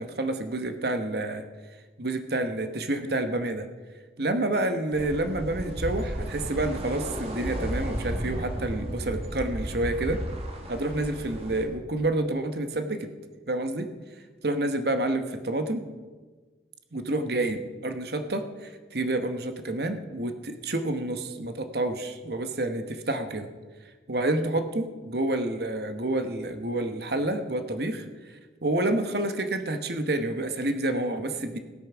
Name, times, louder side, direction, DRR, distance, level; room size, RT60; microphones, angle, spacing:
voice 1, 0.0-1.4 2.0-3.7 4.2-10.2 10.7-13.1 13.5-13.9 14.4-15.9 16.9-23.5 24.1-31.6, right 2 dB, 60° right, 8 dB, 1.1 m, -29 dB
Sea soundscape, 4.9-11.6, equal, 35° right, 1.7 m, -34 dB
16.0 x 9.2 x 6.1 m, 1.4 s
head